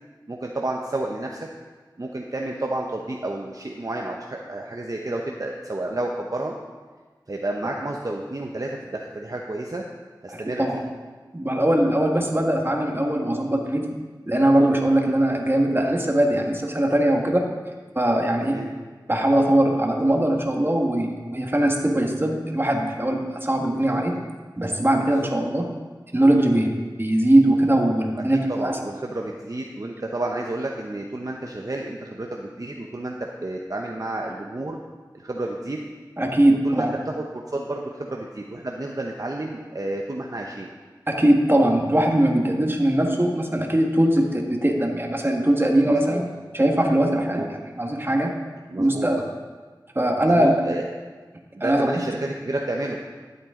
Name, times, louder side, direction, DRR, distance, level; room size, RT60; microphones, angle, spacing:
voice 1, 0.3-1.5 2.0-6.5 7.3-9.8 10.2-10.7 18.4-18.7 23.8-24.0 25.0-25.3 28.2-33.1 33.4-34.8 35.1-35.8 36.6-40.7 45.8-46.2 47.2-47.5 48.7-49.1 50.2-50.8 51.5-53.0, right 2 dB, 50° right, 0 dB, 0.8 m, -31 dB
voice 2, 10.3-10.8 11.3-13.8 14.3-17.4 17.9-18.6 19.1-24.1 24.6-25.7 26.1-28.8 36.2-36.9 41.1-46.3 46.5-48.3 48.8-49.2 49.9-50.5 51.6-51.9, right 1 dB, 30° right, 1 dB, 1.5 m, -21 dB
12.0 x 8.1 x 3.8 m, 1.4 s
wide cardioid pair, 45°, 8 cm